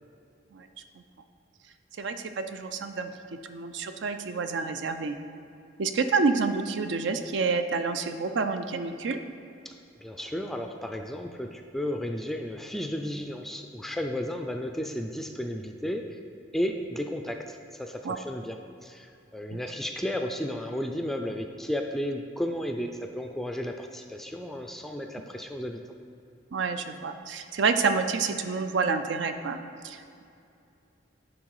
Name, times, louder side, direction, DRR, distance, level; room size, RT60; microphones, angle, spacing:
voice 1, 2.0-3.1 3.5-5.1 5.8-9.2 18.0-18.2 19.5-19.6 26.5-29.6 29.8-30.2, right 4 dB, 75° right, 8 dB, 0.5 m, -28 dB
voice 2, 10.0-16.2 16.5-25.8, equal, ahead, 4 dB, 0.3 m, -33 dB
10.0 x 3.7 x 4.7 m, 2.6 s
head